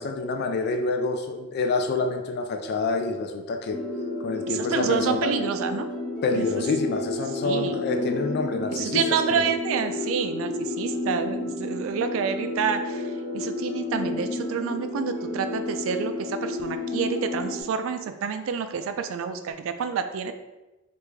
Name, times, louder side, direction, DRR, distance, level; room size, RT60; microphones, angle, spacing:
voice 1, 0.0-3.8 4.2-5.3 6.2-9.4, left 3 dB, 50° left, 5 dB, 0.3 m, -27 dB
sound 1, 3.7-17.6, left 2 dB, 20° left, 1.4 m, -31 dB
voice 2, 4.5-5.9 6.3-6.6 7.4-7.8 8.7-13.0 13.3-20.3, right 6 dB, 70° right, 8 dB, 0.3 m, -28 dB
3.4 x 2.5 x 3.1 m, 1.1 s
head